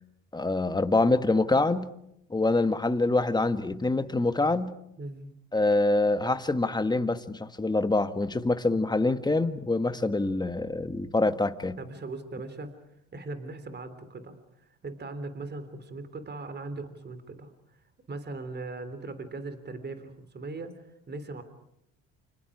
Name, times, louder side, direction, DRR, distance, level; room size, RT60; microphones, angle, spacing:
voice 1, 0.3-1.9 2.3-4.7 5.5-11.8, left 2 dB, 10° left, 10 dB, 1.6 m, -25 dB
voice 2, 5.0-5.3 11.8-12.7 13.1-14.4 14.8-17.5 18.1-21.4, right 3 dB, 30° right, 11 dB, 3.2 m, -39 dB
29.0 x 26.0 x 4.9 m, 0.78 s
supercardioid pair, 95°, 36 cm